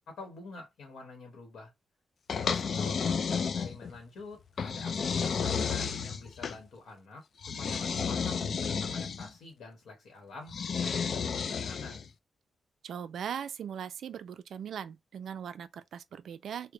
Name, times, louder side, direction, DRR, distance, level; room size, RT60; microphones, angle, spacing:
voice 1, 0.1-1.7 2.4-10.5 10.8-11.2 11.5-12.0, left 3 dB, 85° left, 1.2 m, -47 dB
sound 1, 2.3-4.0 4.6-6.6 7.4-9.3 10.5-12.1, left 6 dB, 45° left, 0.3 m, -32 dB
voice 2, 12.8-16.7, right 8 dB, 70° right, 0.4 m, -39 dB
3.3 x 2.2 x 3.7 m
wide cardioid pair, 160°, 0 cm